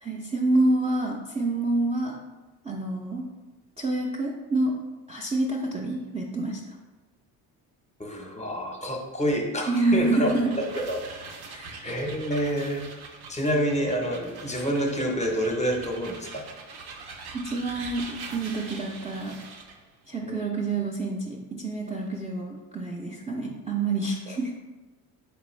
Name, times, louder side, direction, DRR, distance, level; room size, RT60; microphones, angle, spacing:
voice 1, 0.0-2.1 2.6-3.2 3.8-4.7 5.1-6.6 9.7-10.6 11.5-11.8 17.3-19.4 20.1-24.6, right 2 dB, 15° right, -2 dB, 0.4 m, -27 dB
voice 2, 8.0-10.3 10.7-11.0 11.8-12.9 13.3-16.4 20.2-20.4 24.3-24.4, equal, 15° left, 1 dB, 0.7 m, -28 dB
sound 1, 9.7-19.8, right 4 dB, 60° right, 0.7 m, -43 dB
3.7 x 3.4 x 3.1 m, 1.2 s
supercardioid pair, 75°, 43 cm